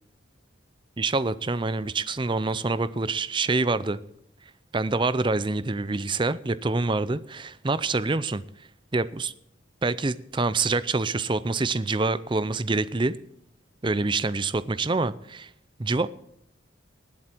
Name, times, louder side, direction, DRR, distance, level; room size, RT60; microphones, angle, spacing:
voice 1, 1.0-4.0 4.7-8.4 8.9-9.3 9.8-13.1 13.8-15.5 15.8-16.1, right 3 dB, 25° right, 15 dB, 0.5 m, -26 dB
19.5 x 7.8 x 4.5 m, 0.75 s
head